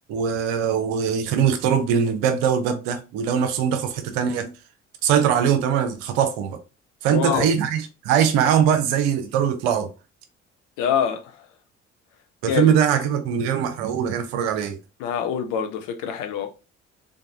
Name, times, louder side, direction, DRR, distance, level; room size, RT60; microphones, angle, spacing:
voice 1, 0.1-4.5 5.0-6.6 7.0-9.9 12.4-14.8, right 8 dB, 65° right, 0.8 m, -21 dB
voice 2, 7.1-7.5 10.8-11.5 12.5-12.7 15.0-16.5, left 8 dB, 60° left, 0.7 m, -25 dB
3.5 x 3.4 x 2.7 m
figure-of-eight pair, 50°, 36 cm